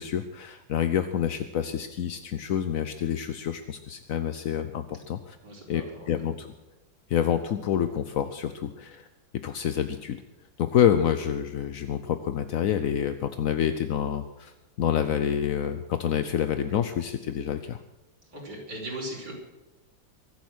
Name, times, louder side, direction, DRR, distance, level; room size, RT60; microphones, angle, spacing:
voice 1, 0.0-5.4 5.7-6.5 7.1-9.1 9.3-10.2 10.6-17.8, left 9 dB, 65° left, 10 dB, 0.8 m, -27 dB
voice 2, 5.4-6.2 18.3-19.3, right 1 dB, 55° right, -3 dB, 4.9 m, -38 dB
23.5 x 8.6 x 6.4 m, 1.1 s
omnidirectional pair, 2.1 m